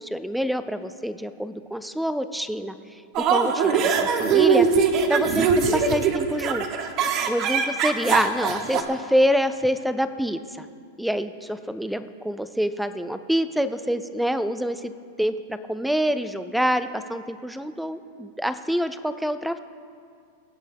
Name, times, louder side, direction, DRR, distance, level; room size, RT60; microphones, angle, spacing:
voice 1, 0.0-2.7 3.3-4.7 5.1-6.7 7.3-10.7 11.0-14.9 15.2-19.6, equal, ahead, 12 dB, 0.4 m, -26 dB
sound 1, 3.1-8.8, right 6 dB, 30° right, 1.0 m, -21 dB
22.5 x 9.7 x 3.5 m, 2.3 s
supercardioid pair, 160°, 0 cm